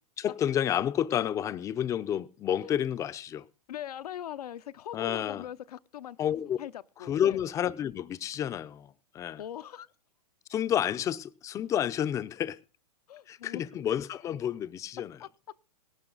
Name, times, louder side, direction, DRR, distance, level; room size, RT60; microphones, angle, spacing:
voice 1, 0.2-3.4 4.9-5.4 6.2-6.6 7.0-8.9 9.1-9.4 10.5-12.6 13.3-15.2, left 10 dB, 15° left, 0.6 m, -30 dB
voice 2, 3.7-6.2 6.6-7.4 9.4-9.9 13.1-13.6 15.2-15.3, left 10 dB, 75° left, 0.7 m, -41 dB
17.0 x 12.0 x 3.9 m
hypercardioid pair, 145°, 20 cm